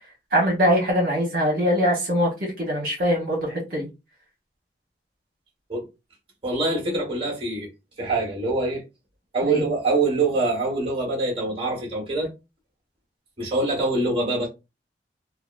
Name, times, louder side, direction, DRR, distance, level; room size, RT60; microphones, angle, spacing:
voice 1, 0.3-2.3 2.6-3.9 9.4-9.6, equal, 55° right, 1.3 m, -22 dB
voice 2, 6.4-7.7 8.0-8.8 9.3-12.3 13.4-14.5, right 2 dB, 30° right, 1.4 m, -24 dB
3.8 x 2.0 x 2.5 m
head